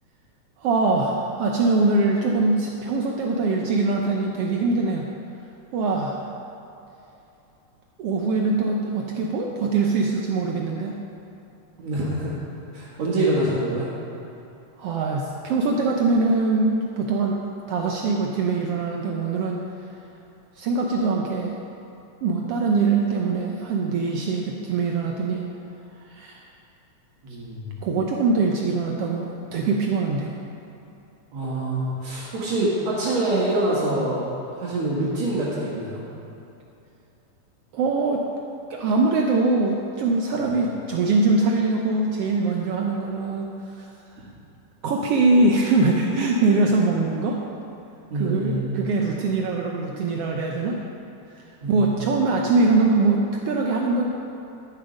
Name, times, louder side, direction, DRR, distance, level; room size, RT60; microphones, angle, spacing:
voice 1, 0.6-5.0 5.7-6.2 8.0-11.0 14.8-17.4 17.7-19.6 20.6-21.5 22.2-25.5 26.0-26.4 27.8-30.3 37.7-38.2 38.7-43.5 43.8-43.9 44.1-44.2 44.8-47.4 48.1-50.8 51.7-54.0, right 3 dB, 80° right, 0 dB, 1.4 m, -22 dB
voice 2, 11.8-12.3 12.7-13.9 27.2-27.8 31.3-34.3 34.6-36.0 40.3-40.5 48.1-48.9 51.6-51.9, right 1 dB, 60° right, -9 dB, 2.9 m, -25 dB
12.0 x 7.4 x 5.2 m, 2.9 s
omnidirectional pair, 3.5 m